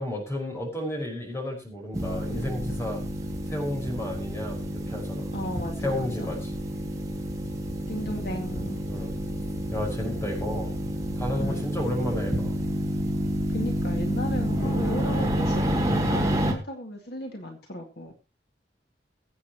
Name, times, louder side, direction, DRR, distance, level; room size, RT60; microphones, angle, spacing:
voice 1, 0.0-3.0 3.5-5.2 5.8-6.4 8.9-9.1 9.7-10.7 11.2-12.5 14.5-14.8, left 1 dB, 15° left, 0 dB, 5.6 m, -32 dB
sound 1, 1.9-16.5, equal, 20° right, 2.4 m, -29 dB
voice 2, 5.3-6.3 7.9-8.8 9.3-9.5 11.4-11.7 13.5-18.1, equal, 60° left, 2 dB, 2.2 m, -35 dB
22.5 x 8.4 x 3.1 m, 0.29 s
head